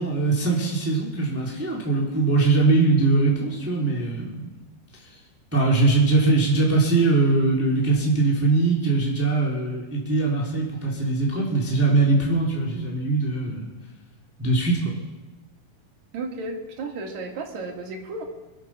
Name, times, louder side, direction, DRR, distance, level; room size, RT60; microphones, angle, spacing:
voice 1, 0.0-4.5 5.5-13.7 14.4-14.9, right 3 dB, 5° right, -4 dB, 2.5 m, -21 dB
voice 2, 16.1-18.2, right 3 dB, 55° right, 1 dB, 3.1 m, -33 dB
25.0 x 8.8 x 6.0 m, 1.1 s
omnidirectional pair, 4.3 m